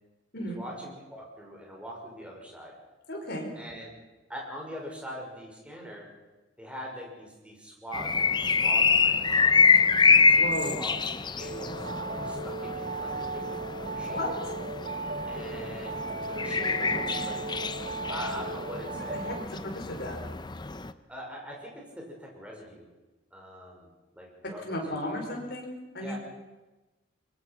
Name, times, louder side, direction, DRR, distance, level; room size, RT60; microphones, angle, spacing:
voice 1, 0.6-2.8 3.6-3.9 4.3-6.1 6.6-9.8 10.4-11.0 11.4-14.3 15.3-16.9 17.2-17.4 18.1-19.2 21.1-22.9 23.3-23.9 24.1-25.3 26.0-26.2, equal, 5° right, -1 dB, 5.7 m, -42 dB
voice 2, 3.1-3.5 10.3-10.8 13.9-14.5 19.1-19.3 19.6-20.2 24.6-26.2, left 1 dB, 55° left, 1 dB, 5.3 m, -34 dB
sound 1, 7.9-20.9, left 5 dB, 25° left, 0.7 m, -26 dB
sound 2, 11.4-19.5, right 3 dB, 45° right, 0.8 m, -36 dB
24.0 x 22.5 x 6.1 m, 1.1 s
head